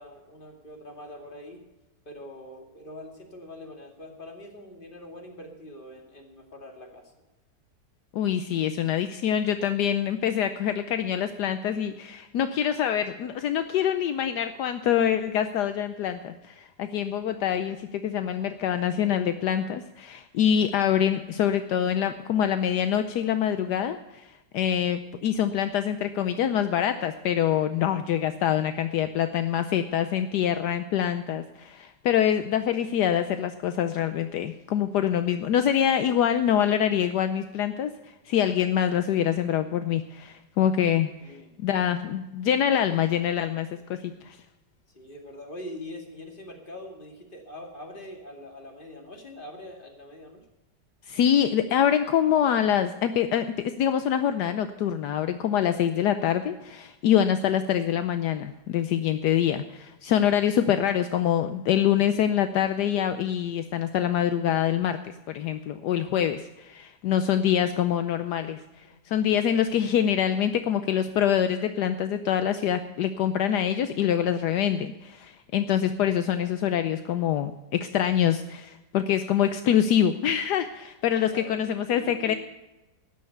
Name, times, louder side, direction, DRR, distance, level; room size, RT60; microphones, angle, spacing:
voice 1, 0.0-1.6 2.1-7.1 41.2-41.5 44.9-50.4 68.8-69.0 76.4-76.5 81.2-82.4, left 1 dB, 30° left, 2 dB, 2.5 m, -43 dB
voice 2, 8.1-24.3 24.5-37.9 38.3-41.1 41.6-44.4 51.1-53.5 53.8-68.6 69.1-82.3, left 9 dB, 75° left, 10 dB, 1.2 m, -25 dB
13.0 x 9.7 x 6.7 m, 1.0 s
omnidirectional pair, 1.9 m